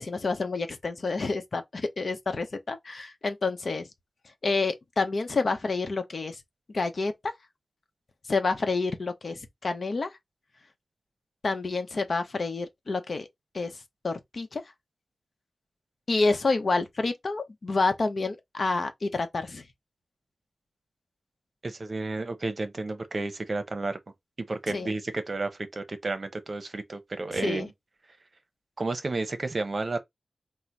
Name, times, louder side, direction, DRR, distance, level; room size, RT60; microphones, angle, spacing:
voice 1, 0.0-3.9 4.4-6.4 6.7-7.3 8.3-10.1 11.4-13.3 13.5-14.6 16.1-19.6 24.7-24.9 27.3-27.7, left 3 dB, 55° left, 0.8 m, -28 dB
voice 2, 21.6-24.0 24.5-27.7 28.8-30.0, right 3 dB, 45° right, 0.8 m, -31 dB
4.1 x 2.2 x 4.5 m
wide cardioid pair, 85°, 0 cm